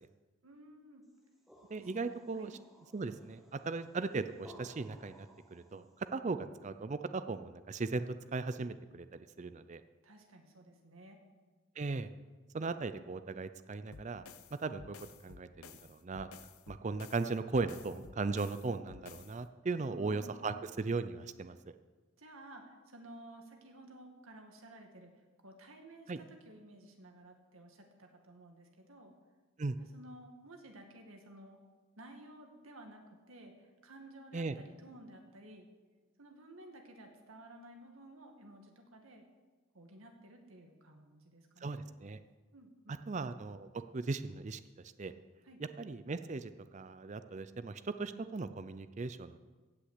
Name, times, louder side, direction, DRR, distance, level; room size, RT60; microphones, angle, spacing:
voice 1, 0.4-1.0 1.8-1.9 2.4-2.5 10.0-11.2 19.7-20.6 22.2-29.1 29.8-31.6 32.0-35.7 36.2-39.2 39.7-41.8 42.5-43.0 45.4-45.6, right 1 dB, 75° right, 3 dB, 2.0 m, -54 dB
sound 1, 1.1-6.1, equal, ahead, 1.5 m, -59 dB
voice 2, 1.7-2.5 2.9-5.3 5.5-8.1 8.3-9.8 11.8-12.1 12.5-14.2 14.6-15.0 15.2-16.3 16.7-21.6 26.1-26.2 29.6-29.8 34.3-34.5 41.6-42.2 43.1-44.6 45.0-45.1 45.8-49.4, right 3 dB, 35° right, 11 dB, 0.4 m, -38 dB
sound 2, 13.9-19.4, left 5 dB, 80° left, 0.7 m, -54 dB
15.5 x 6.1 x 8.2 m, 1.3 s
head